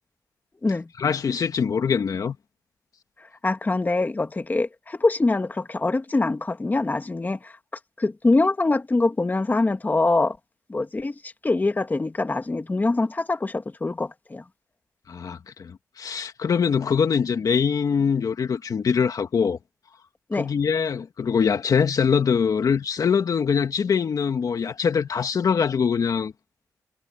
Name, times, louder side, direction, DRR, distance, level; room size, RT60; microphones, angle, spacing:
voice 1, 1.0-2.4 15.1-19.6 20.3-26.3, left 6 dB, 65° left, 1.9 m, -23 dB
voice 2, 3.4-7.5 8.0-10.4 10.7-14.4 20.3-20.5, left 2 dB, 25° left, 2.0 m, -24 dB
cardioid pair, 85°, 7 cm